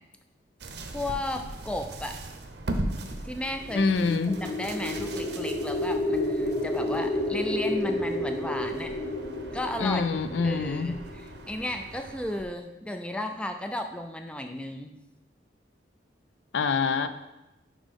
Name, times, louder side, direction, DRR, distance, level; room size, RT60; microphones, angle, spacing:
sound 1, 0.6-12.5, right 1 dB, 60° right, 0.7 m, -39 dB
voice 1, 0.9-2.1 3.2-3.9 4.3-9.0 9.5-10.0 10.4-14.9, left 1 dB, 5° left, 5 dB, 0.3 m, -34 dB
sound 2, 3.6-11.7, left 1 dB, 60° left, 2.2 m, -31 dB
voice 2, 3.7-4.4 9.8-10.9 16.5-17.1, left 4 dB, 80° left, 10 dB, 0.5 m, -25 dB
5.4 x 5.0 x 5.2 m, 0.99 s
head